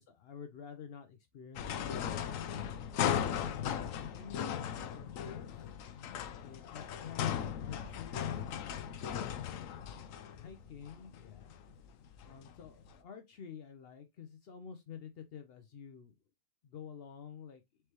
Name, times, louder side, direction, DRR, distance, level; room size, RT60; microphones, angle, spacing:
voice 1, 0.1-2.2 2.8-5.8 6.4-8.5 8.9-9.7 10.4-11.5 12.3-16.1 16.6-17.6, left 7 dB, 85° left, 0.5 m, -49 dB
sound 1, 1.6-12.9, left 9 dB, 70° left, 0.8 m, -38 dB
4.5 x 3.3 x 2.9 m
omnidirectional pair, 1.7 m